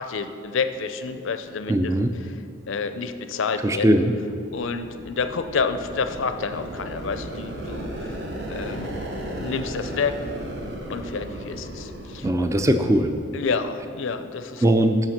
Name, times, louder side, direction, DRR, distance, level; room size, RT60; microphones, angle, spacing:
voice 1, 0.0-1.9 2.2-3.9 4.5-8.2 8.5-9.0 9.4-10.2 10.9-12.3 13.3-14.6, left 5 dB, 65° left, 9 dB, 0.5 m, -29 dB
voice 2, 1.7-2.1 3.6-4.1 12.2-13.1 14.6-15.0, right 1 dB, 15° right, 7 dB, 0.3 m, -19 dB
sound 1, 4.2-13.9, right 1 dB, 55° right, 1.0 m, -35 dB
7.2 x 5.7 x 6.4 m, 2.5 s
head